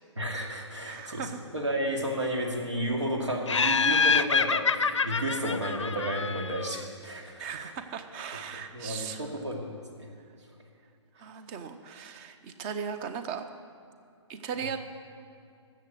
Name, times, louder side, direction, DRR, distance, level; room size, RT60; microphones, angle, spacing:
voice 1, 0.2-4.7 5.0-7.7 8.7-10.1, right 1 dB, 70° right, 1 dB, 2.4 m, -32 dB
voice 2, 0.9-1.4 7.4-9.3 11.2-13.4 14.3-14.8, right 7 dB, 20° right, 9 dB, 0.7 m, -37 dB
Laughter, 3.5-6.8, left 5 dB, 75° left, 0.6 m, -26 dB
13.5 x 7.7 x 7.7 m, 2.4 s
figure-of-eight pair, 130°, 16 cm